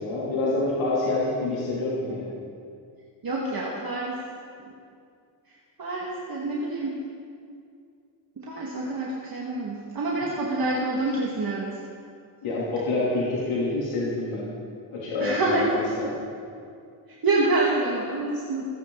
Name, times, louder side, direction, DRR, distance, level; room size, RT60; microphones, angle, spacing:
voice 1, 0.0-2.2 12.4-14.4 14.9-16.1, left 2 dB, 80° left, -8 dB, 3.7 m, -27 dB
voice 2, 3.2-4.2 4.6-4.7 5.5-7.0 8.4-11.8 15.2-15.7 16.0-16.1 17.1-18.7, right 2 dB, 45° right, -4 dB, 2.4 m, -27 dB
27.5 x 11.0 x 4.1 m, 2.3 s
cardioid pair, 85°, 50 cm